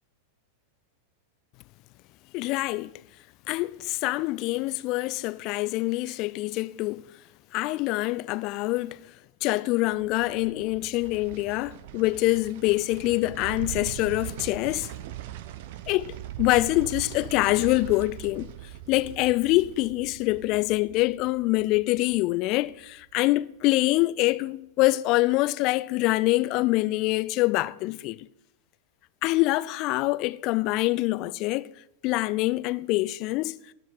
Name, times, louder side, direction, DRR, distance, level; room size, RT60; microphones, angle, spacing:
voice 1, 2.3-2.9 3.5-7.0 7.5-9.0 9.4-14.9 15.9-18.5 18.9-28.3 29.2-31.7 32.0-33.6, left 20 dB, 40° left, 0.5 m, -25 dB
sound 1, 9.8-23.0 23.4-23.5, right 14 dB, 50° right, 0.9 m, -41 dB
19.0 x 6.5 x 8.8 m
figure-of-eight pair, 90°, 0 cm